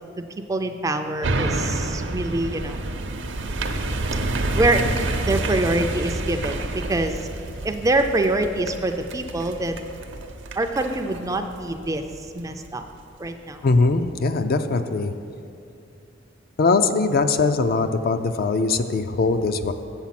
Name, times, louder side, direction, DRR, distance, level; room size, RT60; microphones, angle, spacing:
voice 1, 0.5-2.8 4.6-4.9 5.2-7.3 7.6-9.9 10.6-12.0 12.3-12.9 13.2-13.6, right 2 dB, 15° right, 7 dB, 0.4 m, -25 dB
sound 1, 1.2-12.7 13.1-13.2, right 2 dB, 65° right, 0.7 m, -29 dB
voice 2, 13.6-15.2 16.6-19.7, left 3 dB, 50° left, 9 dB, 0.4 m, -21 dB
7.9 x 7.2 x 5.8 m, 2.5 s
head